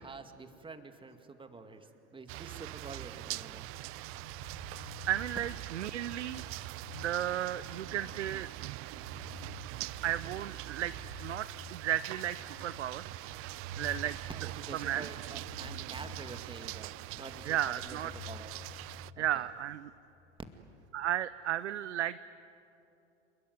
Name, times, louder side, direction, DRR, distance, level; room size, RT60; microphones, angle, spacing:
voice 1, 0.0-3.7 14.3-18.5 19.2-19.5, right 3 dB, 15° right, 8 dB, 2.1 m, -47 dB
sound 1, 2.3-19.1, right 19 dB, 40° right, 0.6 m, -43 dB
sound 2, 3.2-20.0, left 6 dB, 55° left, 3.5 m, -52 dB
voice 2, 5.1-6.5 6.9-8.5 10.0-10.9 11.2-13.1 13.4-14.2 14.7-15.1 17.4-18.1 19.2-19.9 20.9-22.2, right 11 dB, 80° right, 15 dB, 0.7 m, -34 dB
28.5 x 21.5 x 9.5 m, 3.0 s
hypercardioid pair, 85°, 35 cm